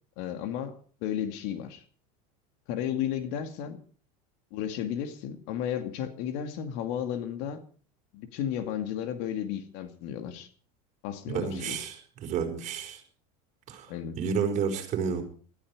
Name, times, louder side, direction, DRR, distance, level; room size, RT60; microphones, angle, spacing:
voice 1, 0.2-1.8 2.7-3.8 4.5-7.6 8.1-10.5 11.0-11.8 13.9-14.2, left 9 dB, 60° left, 8 dB, 2.4 m, -33 dB
voice 2, 11.3-13.0 13.7-15.2, right 6 dB, 40° right, 3 dB, 5.1 m, -31 dB
19.5 x 13.5 x 4.9 m, 0.41 s
supercardioid pair, 130°, 19 cm